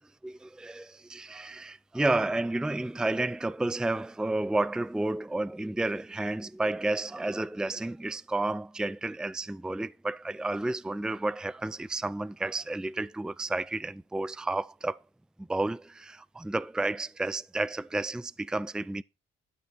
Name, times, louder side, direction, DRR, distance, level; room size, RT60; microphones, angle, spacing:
voice 1, 0.2-15.0 15.4-19.0, right 2 dB, 5° right, 0.4 m, -31 dB
12.5 x 6.0 x 4.2 m
cardioid pair, 90°, 20 cm